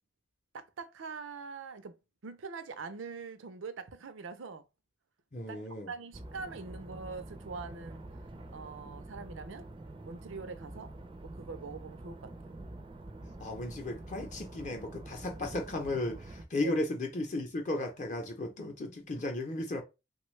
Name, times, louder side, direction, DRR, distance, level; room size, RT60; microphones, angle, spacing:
voice 1, 0.5-2.0 2.2-4.6 5.5-8.0 8.5-9.7 10.0-10.9 11.2-12.3 16.6-16.8, right 4 dB, 85° right, 0.5 m, -43 dB
voice 2, 5.3-5.9 13.4-19.8, left 2 dB, 40° left, 0.6 m, -35 dB
sound 1, 6.1-16.4, right 2 dB, 25° right, 0.4 m, -47 dB
3.4 x 2.2 x 3.1 m
head